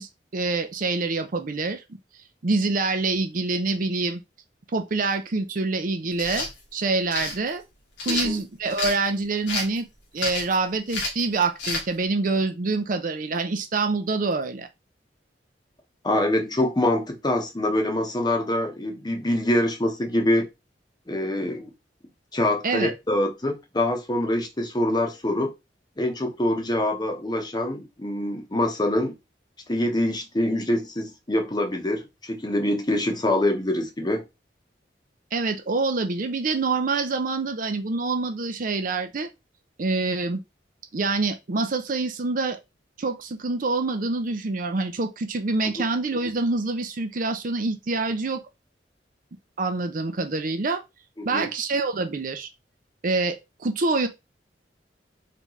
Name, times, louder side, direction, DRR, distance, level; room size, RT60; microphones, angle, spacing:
voice 1, 0.0-1.8 2.4-4.2 4.7-6.5 6.7-7.6 8.1-9.9 10.1-14.7 22.6-22.9 35.3-39.3 39.8-40.4 40.9-42.6 43.0-48.4 49.6-50.8 51.2-52.5 53.0-54.1, right 3 dB, 50° right, 0.6 m, -26 dB
sound 1, 6.1-6.5 7.1-7.4 8.0-9.0 9.5-9.8 10.2-10.5 10.9-11.2 11.6-11.8, left 3 dB, 85° left, 1.5 m, -29 dB
voice 2, 8.1-8.4 16.0-20.5 21.1-21.7 22.3-25.5 26.0-29.1 29.7-34.2 51.2-51.5, left 1 dB, 25° left, 0.9 m, -25 dB
3.9 x 3.5 x 3.1 m
head